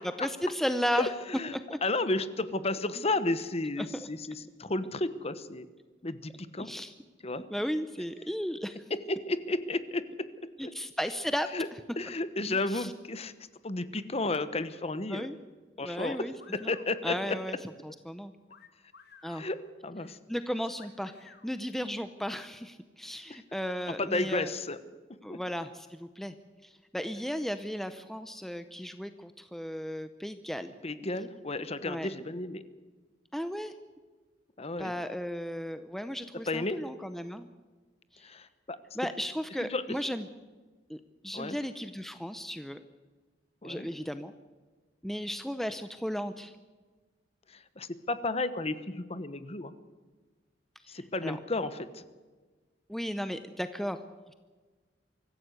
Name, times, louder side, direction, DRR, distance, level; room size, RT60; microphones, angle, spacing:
voice 1, 0.2-1.1 1.5-1.8 3.8-3.9 6.6-6.9 7.5-8.8 10.6-11.5 12.4-12.9 15.1-15.4 15.8-16.3 16.6-16.7 17.0-17.6 17.8-18.3 19.2-19.4 20.3-24.5 25.2-26.3 26.6-30.7 31.9-32.1 33.3-33.7 34.8-37.5 38.1-38.3 38.9-40.3 40.9-42.8 43.6-44.3 45.0-46.5 50.8-51.4 52.9-54.0, equal, ahead, 10 dB, 0.7 m, -35 dB
voice 2, 0.9-5.7 6.0-6.7 7.2-7.4 8.9-10.3 10.6-10.7 11.5-11.7 12.0-13.3 13.6-15.3 15.8-16.3 16.5-17.4 19.3-20.2 24.0-24.8 25.3-25.4 30.8-32.6 34.6-34.9 36.5-36.8 38.2-38.8 39.6-39.8 41.3-41.6 43.6-43.9 47.5-49.7 50.9-52.0, left 2 dB, 35° left, 13 dB, 1.1 m, -33 dB
sound 1, 16.0-16.9 18.5-19.5 20.8-21.5, left 6 dB, 60° left, 1.9 m, -53 dB
24.0 x 14.5 x 8.2 m, 1.4 s
head